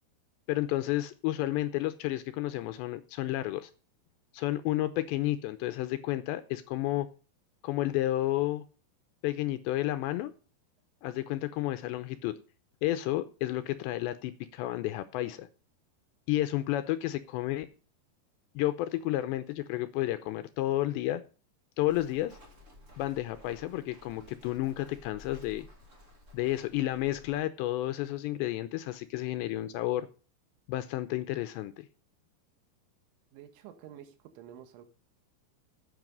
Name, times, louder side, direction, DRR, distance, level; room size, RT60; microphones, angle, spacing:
voice 1, 0.5-3.7 4.3-7.1 7.6-8.6 9.2-10.3 11.0-12.4 12.8-15.5 16.3-17.7 18.6-21.2 21.8-22.4 23.0-25.7 26.3-30.1 30.7-31.9, left 15 dB, 80° left, 10 dB, 2.7 m, -31 dB
Walk footsteps, 21.9-27.4, left 2 dB, 45° right, 0.9 m, -54 dB
voice 2, 33.3-34.9, right 10 dB, 85° right, 8 dB, 3.8 m, -49 dB
11.0 x 8.4 x 5.2 m, 0.35 s
omnidirectional pair, 5.4 m